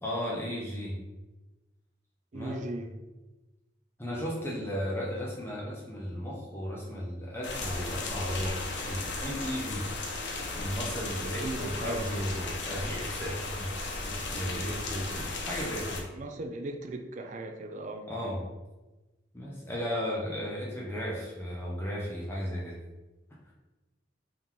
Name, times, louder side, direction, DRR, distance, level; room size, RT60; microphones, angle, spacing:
voice 1, 0.0-1.0 2.3-2.7 4.0-8.6 8.8-9.9 10.5-16.0 18.1-18.4 19.3-22.8, equal, 15° left, -5 dB, 0.7 m, -35 dB
voice 2, 2.3-2.9 11.4-12.1 16.1-18.1, right 2 dB, 45° right, 5 dB, 0.4 m, -38 dB
sound 1, 7.4-16.0, left 3 dB, 85° left, 0.7 m, -36 dB
3.9 x 2.9 x 3.6 m, 1.1 s
head